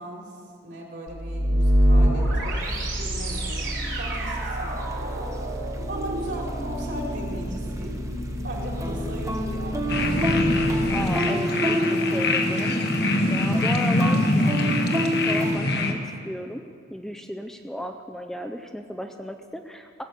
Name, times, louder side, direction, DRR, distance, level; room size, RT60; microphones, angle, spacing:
voice 1, 0.0-8.0 8.4-10.0, right 1 dB, 65° right, -2 dB, 3.1 m, -37 dB
sound 1, 1.1-11.1, equal, 80° right, 3.7 m, -26 dB
sound 2, 2.6-2.7 3.4-3.5 4.3-5.5 5.7-6.0 6.3-7.9 8.2-15.6, right 1 dB, 15° right, 0.7 m, -28 dB
sound 3, 9.9-15.9, left 2 dB, 55° left, 1.0 m, -24 dB
voice 2, 10.9-16.0 16.3-16.6 16.9-20.0, equal, ahead, 5 dB, 0.4 m, -35 dB
17.0 x 8.0 x 6.7 m, 2.4 s
head